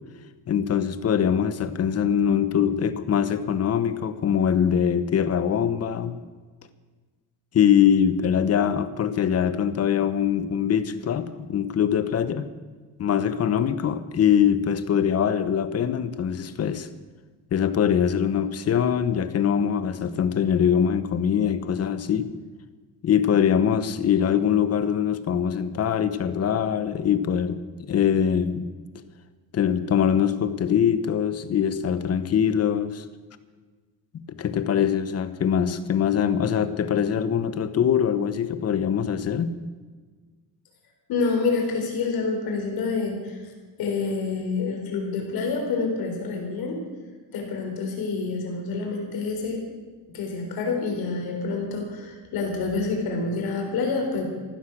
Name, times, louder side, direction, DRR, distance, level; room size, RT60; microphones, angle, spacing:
voice 1, 0.5-6.2 7.5-12.5 13.0-16.9 17.5-22.3 23.0-28.7 29.5-33.0 34.1-39.5, left 8 dB, 40° left, 13 dB, 1.0 m, -23 dB
voice 2, 41.1-43.5 43.8-46.8 47.3-49.6 50.1-54.2, left 4 dB, 65° left, 2 dB, 4.1 m, -27 dB
15.0 x 12.5 x 6.1 m, 1.4 s
cardioid pair, 140°, 38 cm